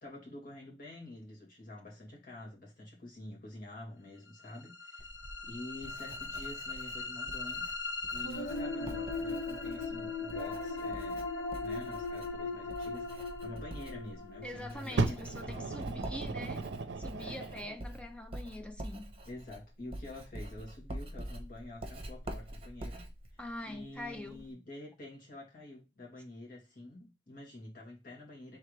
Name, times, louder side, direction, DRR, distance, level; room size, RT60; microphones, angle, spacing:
voice 1, 0.0-5.1 5.4-7.7 8.1-11.3 11.6-15.9 17.2-17.4 19.3-23.1 23.7-28.6, left 1 dB, 55° left, 2.1 m, -47 dB
sound 1, 4.4-16.4, left 3 dB, 80° left, 0.7 m, -39 dB
Writing, 5.0-24.5, right 1 dB, 35° right, 0.9 m, -46 dB
voice 2, 14.4-16.7 17.0-19.2 23.4-24.5, left 1 dB, 5° left, 0.4 m, -44 dB
Fire, 15.0-17.8 18.6-18.7, right 3 dB, 75° right, 0.6 m, -35 dB
4.6 x 3.4 x 3.2 m
head